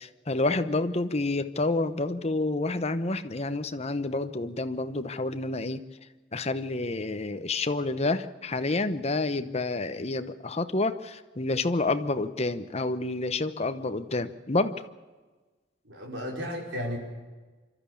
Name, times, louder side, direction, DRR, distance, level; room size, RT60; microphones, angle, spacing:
voice 1, 0.0-5.8 6.3-14.8, left 2 dB, 35° left, 10 dB, 1.0 m, -29 dB
voice 2, 15.8-17.0, equal, 70° right, 0 dB, 5.2 m, -34 dB
26.0 x 13.0 x 8.5 m, 1.3 s
head